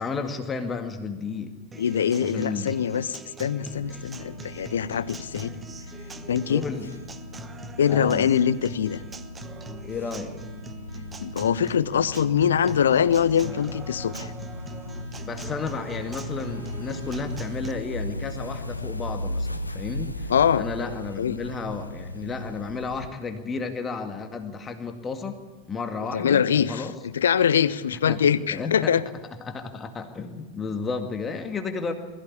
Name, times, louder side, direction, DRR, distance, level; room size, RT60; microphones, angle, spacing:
voice 1, 0.0-1.5 2.2-2.8 6.5-6.9 7.9-8.3 9.8-10.4 15.2-25.4 25.7-26.9 28.0-28.2 28.5-28.9 29.4-31.9, left 4 dB, 20° left, 6 dB, 2.0 m, -32 dB
Acoustic guitar, 1.7-17.7, right 3 dB, 15° right, 1.0 m, -42 dB
voice 2, 1.8-5.5 6.3-6.6 7.8-9.0 11.2-14.3 20.3-21.4 26.1-26.9 27.1-29.0, left 8 dB, 65° left, 18 dB, 0.8 m, -23 dB
sound 1, 3.7-23.1, left 1 dB, 85° left, 1.1 m, -37 dB
21.5 x 15.0 x 8.5 m, 1.3 s
figure-of-eight pair, 90°, 0 cm